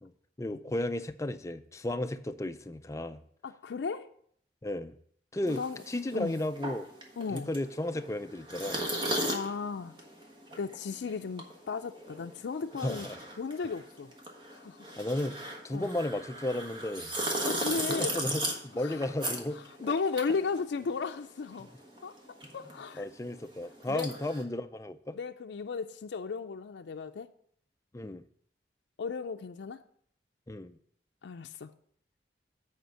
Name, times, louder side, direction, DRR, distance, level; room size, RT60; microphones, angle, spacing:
voice 1, 0.4-3.2 4.6-4.9 5.3-6.9 7.3-8.8 12.8-13.2 15.0-17.2 17.6-19.6 21.6-21.8 22.5-22.6 23.0-25.2 27.9-28.2 30.5-30.8, left 1 dB, 15° left, 0.4 m, -34 dB
voice 2, 3.4-4.1 5.4-5.8 6.1-6.4 7.2-7.5 9.3-10.0 10.6-13.1 13.4-14.1 14.5-14.9 15.7-15.9 17.5-18.2 18.8-19.0 19.8-21.7 22.0-23.0 23.9-24.1 25.1-27.3 29.0-29.8 31.2-31.7, left 5 dB, 80° left, 0.4 m, -35 dB
sound 1, 5.5-21.3 21.5-24.4, right 1 dB, 25° right, 1.3 m, -37 dB
8.0 x 5.1 x 6.3 m
head